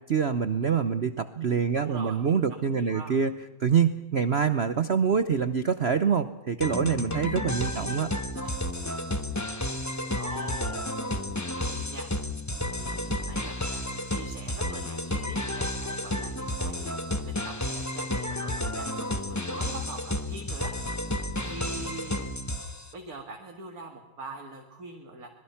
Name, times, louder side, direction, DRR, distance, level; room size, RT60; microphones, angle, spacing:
voice 1, 0.1-3.3 3.6-8.1, right 6 dB, 65° right, 11 dB, 0.6 m, -25 dB
voice 2, 1.5-2.2 2.6-3.2 7.7-8.0 8.3-8.5 10.2-10.9 11.5-12.1 12.6-16.9 17.2-20.7 21.4-22.3 22.9-25.3, right 3 dB, 45° right, 1 dB, 2.5 m, -43 dB
sound 1, 6.6-22.9, left 1 dB, 15° left, 0.5 m, -31 dB
26.0 x 21.0 x 5.8 m, 1.1 s
omnidirectional pair, 2.2 m